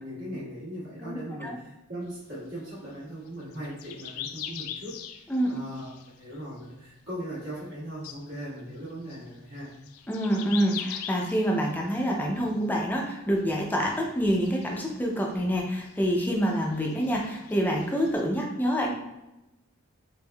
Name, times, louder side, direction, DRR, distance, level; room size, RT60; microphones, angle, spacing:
voice 1, 0.0-5.0 5.5-5.9 6.2-9.7, equal, 70° right, -12 dB, 1.3 m, -39 dB
voice 2, 1.0-1.6 5.3-5.6 10.1-18.9, equal, 10° left, 0 dB, 0.4 m, -27 dB
sound 1, 2.1-6.9 7.2-7.7 8.0-13.1 13.4-15.4 15.7-18.2, left 9 dB, 85° left, 0.3 m, -43 dB
3.5 x 3.4 x 2.2 m, 0.93 s
head